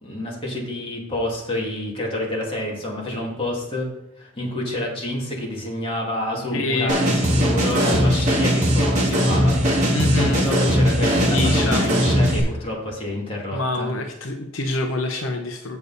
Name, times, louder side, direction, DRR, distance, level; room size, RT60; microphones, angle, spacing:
voice 1, 0.0-3.9 4.2-9.6 10.2-13.9, left 1 dB, 25° left, -3 dB, 2.3 m, -28 dB
voice 2, 6.5-6.9 9.9-10.4 11.3-11.9 13.5-15.8, left 2 dB, 75° left, 4 dB, 0.9 m, -25 dB
sound 1, 6.9-12.4, equal, 35° right, 2.4 m, -19 dB
8.2 x 6.9 x 4.1 m, 0.83 s
head